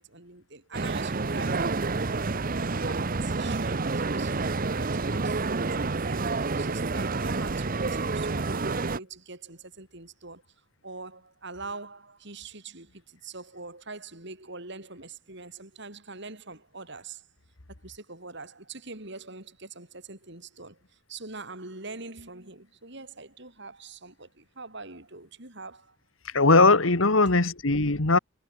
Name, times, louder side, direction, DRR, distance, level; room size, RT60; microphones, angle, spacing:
voice 1, 0.0-2.3 2.6-10.4 10.8-17.3 17.8-26.0, right 3 dB, 60° right, 6.5 m, -43 dB
sound 1, 0.7-9.0, right 3 dB, 45° right, 0.9 m, -29 dB
voice 2, 26.3-28.2, left 3 dB, 80° left, 2.1 m, -20 dB
head